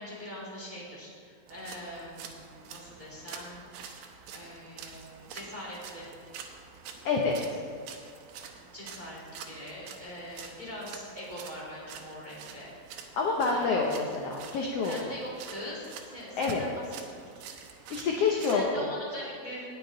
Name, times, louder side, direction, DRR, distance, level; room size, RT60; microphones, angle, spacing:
voice 1, 0.0-6.1 8.7-12.7 13.4-14.0 14.8-16.8 17.1-17.2 18.3-19.8, equal, 15° right, -5 dB, 2.0 m, -42 dB
sound 1, 1.5-18.7, right 7 dB, 85° right, 2.6 m, -47 dB
voice 2, 7.0-7.6 13.1-14.9 16.4-16.6 17.9-18.9, left 4 dB, 75° left, 0 dB, 1.4 m, -27 dB
18.5 x 7.0 x 3.9 m, 2.1 s
omnidirectional pair, 4.0 m